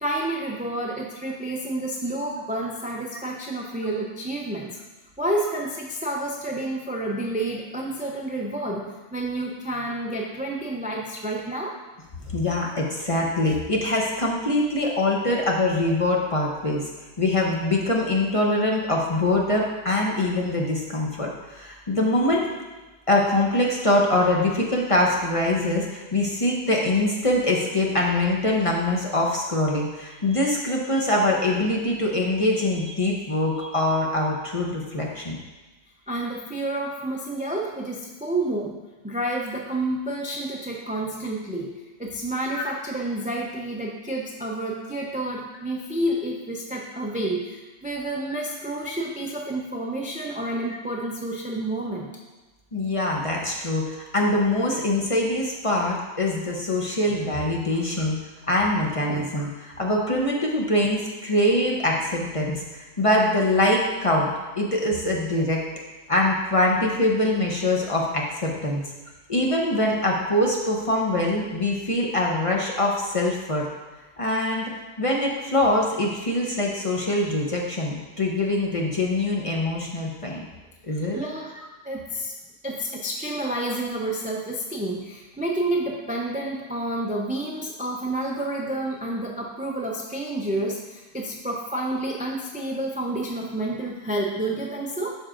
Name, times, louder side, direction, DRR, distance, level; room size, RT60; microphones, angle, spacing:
voice 1, 0.0-4.7 5.2-11.7 36.1-38.7 39.0-52.1 57.7-57.8 59.1-59.3 81.1-81.5 81.8-82.3 82.6-95.1, right 1 dB, 15° right, -1 dB, 0.3 m, -29 dB
voice 2, 12.3-16.9 17.2-22.4 23.1-35.4 42.6-42.7 52.7-58.2 58.5-64.3 64.6-65.6 66.1-68.8 69.3-73.7 74.2-74.7 75.0-80.4 80.8-81.2, left 1 dB, 30° left, -2 dB, 0.7 m, -23 dB
11.5 x 4.6 x 2.5 m, 1.2 s
omnidirectional pair, 1.3 m